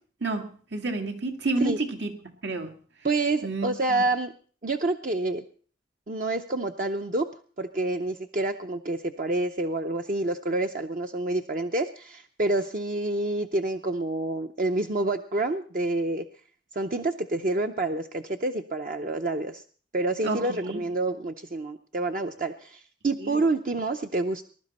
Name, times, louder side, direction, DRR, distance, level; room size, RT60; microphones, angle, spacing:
voice 1, 0.2-2.8 3.4-4.1 20.2-20.8 23.2-23.4, right 2 dB, 85° right, 2.0 m, -30 dB
voice 2, 3.0-4.3 4.6-5.4 6.1-7.3 7.6-16.2 16.7-19.6 19.9-24.4, right 2 dB, 50° right, 0.6 m, -28 dB
20.5 x 11.5 x 4.2 m
head